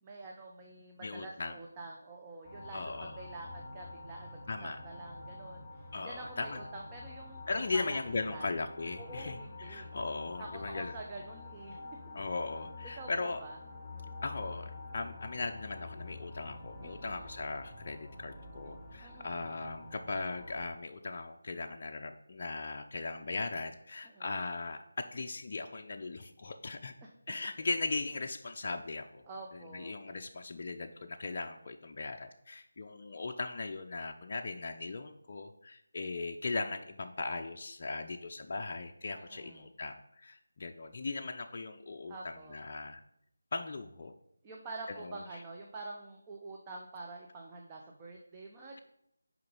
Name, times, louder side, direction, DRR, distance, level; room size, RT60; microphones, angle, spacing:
voice 1, 0.0-7.4 7.7-8.5 9.0-9.9 10.4-11.8 12.8-13.6 16.8-17.4 19.0-19.5 24.0-24.3 27.0-27.1 29.3-30.0 39.1-39.7 42.1-42.6 44.4-48.8, right 3 dB, 15° right, 0 dB, 0.6 m, -47 dB
voice 2, 1.0-1.6 2.7-3.1 4.5-4.8 5.9-6.6 7.5-10.9 12.1-13.4 14.2-26.9 27.3-29.2 29.5-43.0 43.5-44.1 44.9-45.1, left 3 dB, 40° left, 3 dB, 0.4 m, -38 dB
sound 1, 2.4-20.6, left 2 dB, ahead, 1.7 m, -47 dB
6.6 x 5.0 x 5.4 m, 0.75 s
figure-of-eight pair, 165°, 0 cm